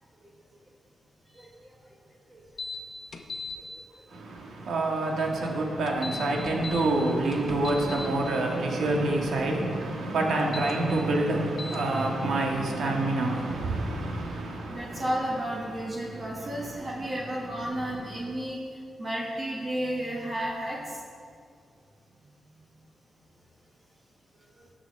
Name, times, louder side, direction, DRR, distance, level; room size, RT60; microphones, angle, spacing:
voice 1, 1.3-1.7 2.3-2.4 3.8-3.9 14.7-18.6 19.0-21.0, right 1 dB, 30° right, 1.4 m, -32 dB
sound 1, 2.6-2.8 3.1-3.5 5.9-6.8 7.3-8.1 10.4-10.7 11.6-11.8, left 4 dB, 50° left, 0.9 m, -37 dB
voice 2, 4.1-15.1 16.0-17.1 17.7-18.1, right 2 dB, 80° right, 1.6 m, -28 dB
17.5 x 6.1 x 3.3 m
wide cardioid pair, 125°, 0 cm